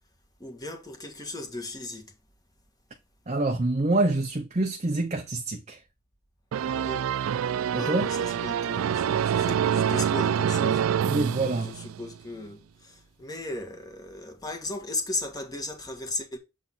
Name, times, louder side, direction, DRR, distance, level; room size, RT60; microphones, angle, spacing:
voice 1, 0.4-2.1 6.7-7.1 7.7-11.1 11.4-16.4, left 2 dB, 20° left, 1.5 m, -36 dB
voice 2, 3.3-5.8 7.7-8.0 11.0-11.7, right 2 dB, 35° right, 0.7 m, -26 dB
sound 1, 6.5-12.2, right 8 dB, 80° right, 0.3 m, -26 dB
7.3 x 3.9 x 3.9 m
head